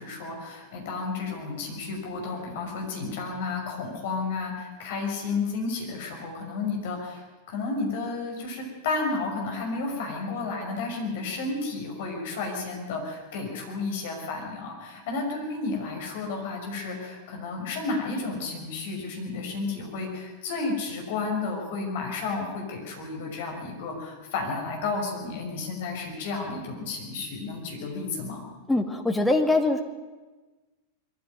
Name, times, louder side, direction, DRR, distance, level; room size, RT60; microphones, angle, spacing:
voice 1, 0.0-28.4, left 3 dB, 55° left, 1 dB, 6.0 m, -32 dB
voice 2, 28.7-29.8, left 2 dB, 5° left, 3 dB, 2.4 m, -23 dB
21.5 x 15.5 x 9.3 m, 1.2 s
figure-of-eight pair, 90°, 0 cm